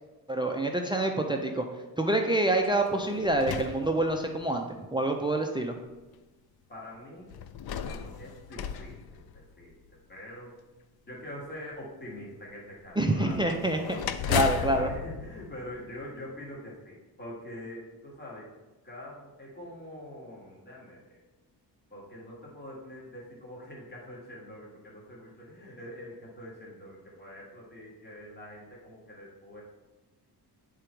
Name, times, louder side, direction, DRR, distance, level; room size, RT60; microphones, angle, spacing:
voice 1, 0.3-1.7 2.0-4.7 4.9-5.8 13.0-14.9, right 1 dB, 15° right, 3 dB, 0.3 m, -27 dB
sound 1, 2.6-4.6 5.4-5.5 7.3-9.9 13.3-16.3, left 8 dB, 65° left, 0.5 m, -35 dB
voice 2, 6.7-7.3 7.8-10.6 11.1-13.9 14.2-18.5 18.8-21.2 21.9-29.6, left 1 dB, 25° left, -5 dB, 1.8 m, -44 dB
9.3 x 3.8 x 4.5 m, 1.1 s
wide cardioid pair, 170°, 40 cm